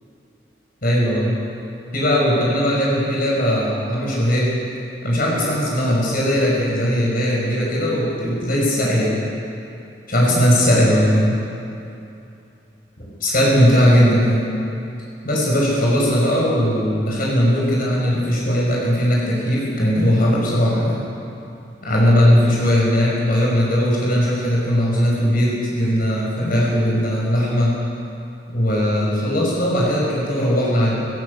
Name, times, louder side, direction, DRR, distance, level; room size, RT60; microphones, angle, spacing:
voice 1, 0.8-1.3 1.9-4.5 5.0-9.2 10.1-11.4 13.0-14.5 15.2-21.0 21.8-27.7 28.5-30.9, equal, 50° left, -5 dB, 5.9 m, -18 dB
19.0 x 18.5 x 8.4 m, 2.7 s
head